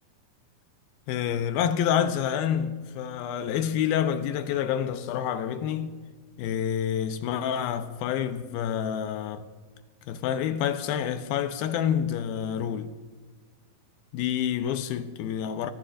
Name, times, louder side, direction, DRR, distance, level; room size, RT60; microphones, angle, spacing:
voice 1, 1.1-6.0 6.4-9.4 10.1-12.9 14.1-15.7, left 9 dB, 85° left, 2.6 m, -28 dB
24.0 x 18.0 x 2.5 m
omnidirectional pair, 4.3 m